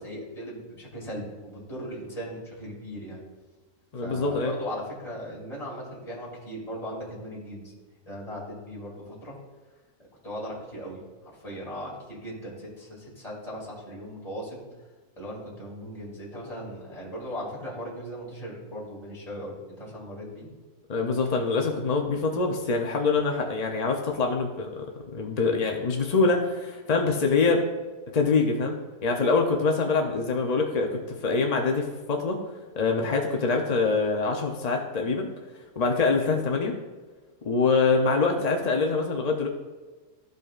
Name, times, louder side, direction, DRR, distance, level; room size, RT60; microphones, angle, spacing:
voice 1, 0.0-3.2 4.0-7.7 8.0-9.3 10.2-11.0 11.4-14.6 15.2-20.5, equal, 25° left, -5 dB, 2.6 m, -38 dB
voice 2, 3.9-4.5 20.9-24.8 25.1-27.6 28.1-28.8 29.0-32.4 32.8-35.3 35.8-36.7 37.4-39.5, left 4 dB, 55° left, 2 dB, 0.4 m, -24 dB
13.5 x 5.3 x 2.4 m, 1.3 s
omnidirectional pair, 1.6 m